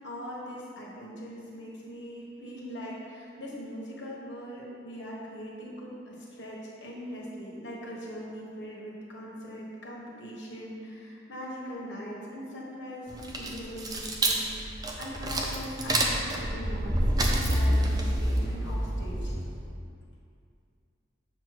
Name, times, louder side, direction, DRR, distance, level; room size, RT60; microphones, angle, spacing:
voice 1, 0.0-19.4, equal, 80° left, -4 dB, 1.4 m, -41 dB
sound 1, 13.1-19.7, right 1 dB, 20° right, 0.5 m, -28 dB
7.0 x 3.0 x 5.9 m, 2.4 s
head